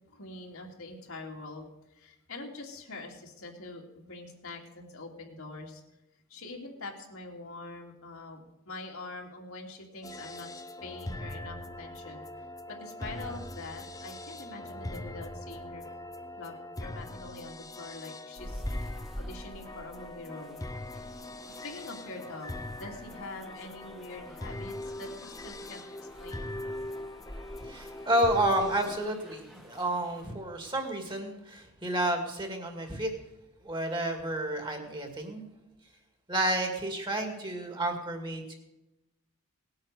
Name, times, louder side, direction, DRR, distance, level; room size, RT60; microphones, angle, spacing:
voice 1, 0.1-1.7 1.9-5.8 6.3-8.4 8.7-10.5 10.8-12.2 12.7-15.8 16.4-18.6 19.2-20.6 21.5-25.8 26.2-26.5, left 2 dB, 70° left, 0 dB, 2.6 m, -44 dB
sound 1, 10.0-29.0, left 1 dB, 15° left, 0.6 m, -41 dB
sound 2, 18.4-30.3, equal, ahead, 1.3 m, -46 dB
voice 2, 27.6-33.1 33.6-35.5 36.3-38.5, right 1 dB, 20° right, 4 dB, 2.3 m, -30 dB
18.5 x 8.8 x 6.7 m, 0.94 s
head